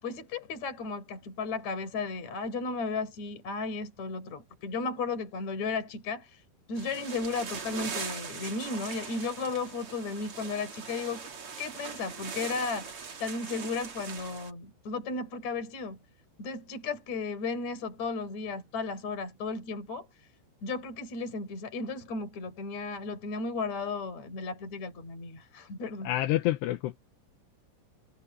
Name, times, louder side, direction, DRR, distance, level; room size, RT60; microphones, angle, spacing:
voice 1, 0.0-6.4 6.7-11.3 11.6-16.0 16.4-20.1 20.6-26.1, left 4 dB, 40° left, 5.9 m, -34 dB
sound 1, 6.8-14.5, right 5 dB, 40° right, 2.6 m, -41 dB
voice 2, 26.0-27.0, left 15 dB, 80° left, 3.0 m, -28 dB
omnidirectional pair, 5.0 m